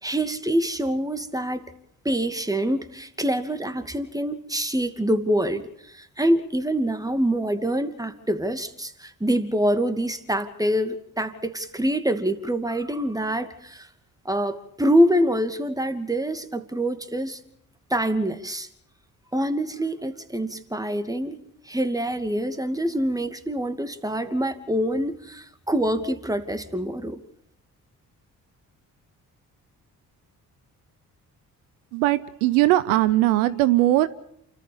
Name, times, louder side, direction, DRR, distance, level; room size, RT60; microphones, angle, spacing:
voice 1, 0.0-1.7 2.0-13.9 14.2-17.4 17.9-18.7 19.3-27.2, equal, 10° right, 2.5 m, -25 dB
voice 2, 31.9-34.1, right 16 dB, 80° right, 0.8 m, -20 dB
28.5 x 14.0 x 7.2 m
hypercardioid pair, 40°, 44 cm